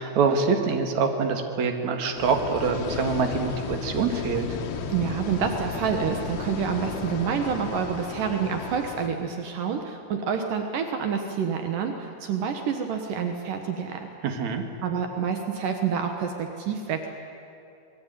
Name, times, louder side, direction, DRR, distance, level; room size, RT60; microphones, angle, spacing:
voice 1, 0.0-4.6 14.2-14.6, right 5 dB, 50° right, 4 dB, 2.3 m, -25 dB
sound 1, 2.1-9.1, left 6 dB, 90° left, 1.5 m, -34 dB
voice 2, 4.9-14.1 14.8-17.1, right 7 dB, 75° right, 5 dB, 1.9 m, -28 dB
27.0 x 21.5 x 9.3 m, 2.6 s
omnidirectional pair, 5.8 m